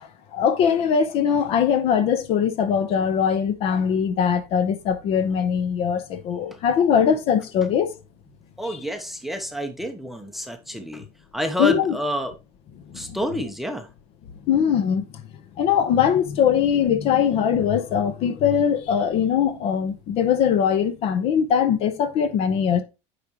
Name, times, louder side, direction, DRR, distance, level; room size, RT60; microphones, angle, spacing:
voice 1, 0.3-7.9 11.6-11.9 13.1-13.2 14.5-15.0 15.6-22.8, left 8 dB, 45° left, 1.0 m, -21 dB
voice 2, 8.6-11.0 11.3-12.3 12.9-13.9, equal, ahead, 0.8 m, -29 dB
9.1 x 5.0 x 3.0 m
cardioid pair, 165°, 14 cm